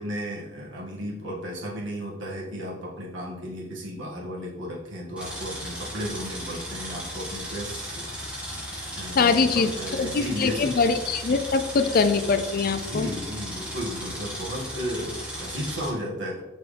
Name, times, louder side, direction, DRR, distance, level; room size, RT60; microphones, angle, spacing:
voice 1, 0.0-8.4 8.9-10.7 12.7-16.4, equal, 75° right, -4 dB, 1.9 m, -34 dB
sound 1, 5.2-15.9, equal, 5° right, 2.1 m, -36 dB
voice 2, 9.2-9.7 10.0-13.1, left 4 dB, 50° left, 10 dB, 0.4 m, -23 dB
6.2 x 5.9 x 3.4 m, 1.1 s
head